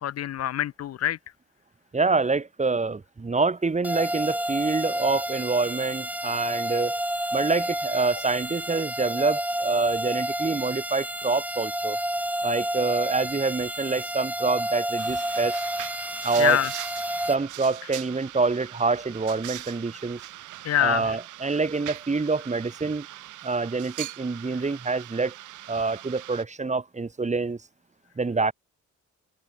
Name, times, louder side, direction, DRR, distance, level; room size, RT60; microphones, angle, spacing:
voice 1, 0.0-1.2 16.4-16.7 20.6-21.2, left 11 dB, 55° left, 0.7 m, -25 dB
voice 2, 1.9-7.0 7.3-12.0 12.4-15.6 16.2-16.6 17.3-20.2 20.8-23.1 23.4-25.3 25.7-27.6 28.2-28.5, right 3 dB, 25° right, 2.7 m, -26 dB
sound 1, 3.8-17.4, right 1 dB, 5° right, 2.1 m, -30 dB
sound 2, 15.0-26.4, right 14 dB, 80° right, 1.8 m, -41 dB
cardioid pair, 90°, 30 cm